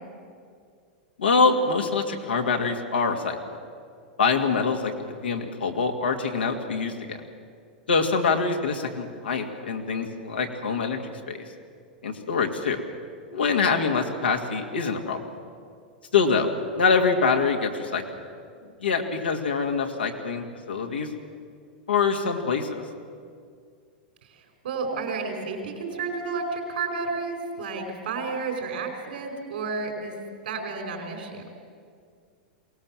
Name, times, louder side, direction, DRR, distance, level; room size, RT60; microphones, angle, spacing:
voice 1, 1.2-3.4 4.2-7.2 7.9-11.4 12.0-12.8 13.3-15.2 16.1-18.0 18.8-21.1 21.9-22.8, left 5 dB, 90° left, 2 dB, 2.2 m, -25 dB
voice 2, 24.3-30.1 30.4-31.4, right 4 dB, 75° right, 3 dB, 4.8 m, -31 dB
22.5 x 18.0 x 7.4 m, 2.2 s
hypercardioid pair, 110°, 5 cm